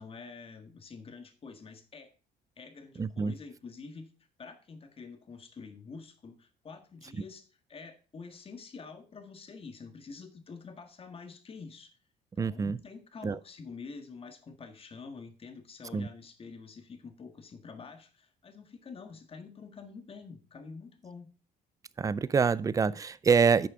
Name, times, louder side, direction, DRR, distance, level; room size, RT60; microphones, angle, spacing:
voice 1, 0.0-2.1 2.6-4.1 4.4-7.4 7.7-11.9 12.4-21.3, left 4 dB, 35° left, 1.7 m, -47 dB
voice 2, 3.0-3.3 12.4-12.8 13.2-13.4 15.9-16.1 22.0-23.7, right 5 dB, 20° right, 0.4 m, -26 dB
11.0 x 6.6 x 3.7 m
cardioid pair, 110°, 17 cm